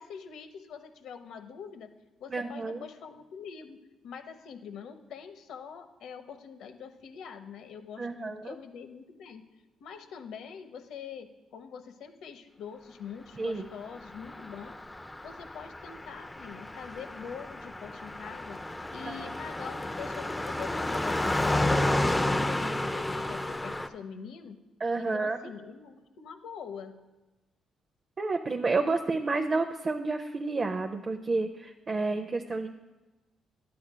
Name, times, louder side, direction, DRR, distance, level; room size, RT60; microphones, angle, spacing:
voice 1, 0.0-1.9 2.2-3.8 4.0-9.4 9.8-14.8 15.2-18.6 18.9-24.6 25.0-27.0, left 6 dB, 80° left, 7 dB, 0.8 m, -44 dB
voice 2, 2.3-2.8 8.0-8.5 13.4-13.6 24.8-25.4 28.2-32.7, right 3 dB, 35° right, 4 dB, 0.5 m, -30 dB
Car passing by, 13.9-23.9, left 1 dB, 10° left, 0.4 m, -31 dB
12.5 x 8.5 x 2.2 m, 1.1 s
cardioid pair, 90°, 0 cm